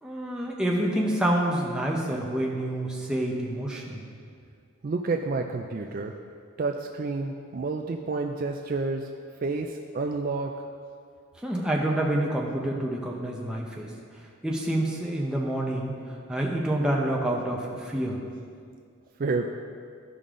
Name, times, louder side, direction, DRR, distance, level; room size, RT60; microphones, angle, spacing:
voice 1, 0.0-4.0 11.4-13.9 14.4-18.2, right 1 dB, 5° right, -3 dB, 0.9 m, -28 dB
voice 2, 4.8-6.2 6.6-9.1 9.4-10.6 19.2-19.5, right 3 dB, 45° right, 4 dB, 0.3 m, -29 dB
13.5 x 5.4 x 3.7 m, 2.2 s
head